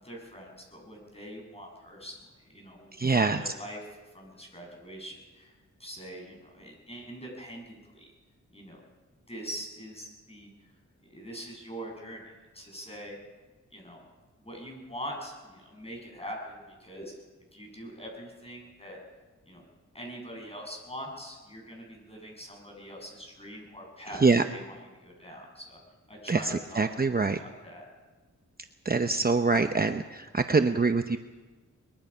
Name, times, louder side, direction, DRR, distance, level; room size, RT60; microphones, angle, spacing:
voice 1, 0.0-3.9 4.1-5.5 5.8-8.1 8.5-8.8 9.3-10.7 11.1-13.2 13.7-14.0 14.4-17.1 17.5-19.0 19.5-19.6 19.9-24.2 24.5-25.8 26.1-27.0 27.4-27.8, equal, 20° left, 0 dB, 7.4 m, -43 dB
voice 2, 3.0-3.4 24.2-24.4 26.3-26.4 26.8-27.4 28.9-31.2, right 4 dB, 30° right, 7 dB, 0.8 m, -24 dB
23.0 x 22.0 x 5.7 m, 1.3 s
wide cardioid pair, 90°, 31 cm